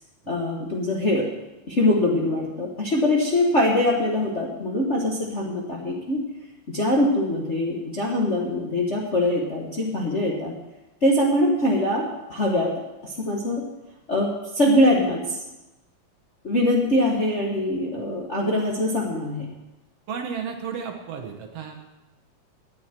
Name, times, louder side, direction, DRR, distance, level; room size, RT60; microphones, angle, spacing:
voice 1, 0.3-1.3 1.7-6.2 6.7-10.5 11.0-12.7 13.0-13.6 14.1-14.3 14.5-15.4 16.4-19.5, left 1 dB, 35° left, -3 dB, 1.1 m, -23 dB
voice 2, 20.1-21.8, right 6 dB, 65° right, 4 dB, 2.0 m, -33 dB
17.5 x 9.9 x 4.4 m, 1.0 s
omnidirectional pair, 3.3 m